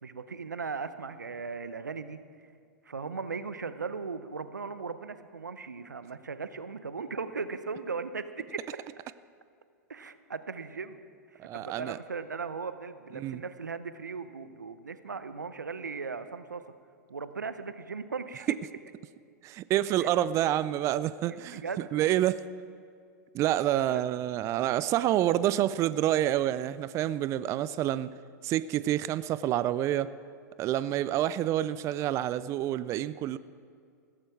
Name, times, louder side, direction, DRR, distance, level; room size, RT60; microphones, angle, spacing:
voice 1, 0.0-2.2 2.9-8.6 9.9-11.0 11.3-16.6 17.1-18.5 20.0-20.1 21.2-21.9 23.7-24.0, right 5 dB, 90° right, 12 dB, 0.7 m, -38 dB
voice 2, 11.4-12.0 13.2-13.4 19.4-22.4 23.3-28.1 28.4-30.1 30.6-33.4, right 12 dB, 30° right, 16 dB, 0.4 m, -28 dB
16.0 x 14.0 x 4.7 m, 2.2 s
hypercardioid pair, 100°, 9 cm